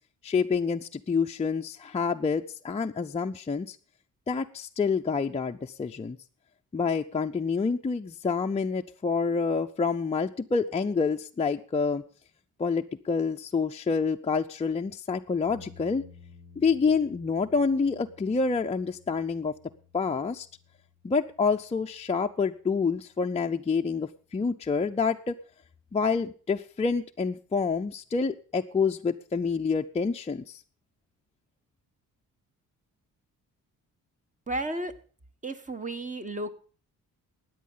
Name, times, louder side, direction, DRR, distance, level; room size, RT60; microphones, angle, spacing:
voice 1, 0.2-3.8 4.3-6.2 6.7-12.0 12.6-16.0 16.6-19.5 19.9-20.5 21.0-25.4 25.9-30.6, left 5 dB, 20° left, 4 dB, 0.5 m, -27 dB
sound 1, 15.5-23.5, left 5 dB, 85° right, 2.9 m, -55 dB
voice 2, 34.5-34.9 35.4-36.5, right 2 dB, 25° right, 9 dB, 1.3 m, -33 dB
13.5 x 9.5 x 5.5 m, 0.41 s
cardioid pair, 105°, 33 cm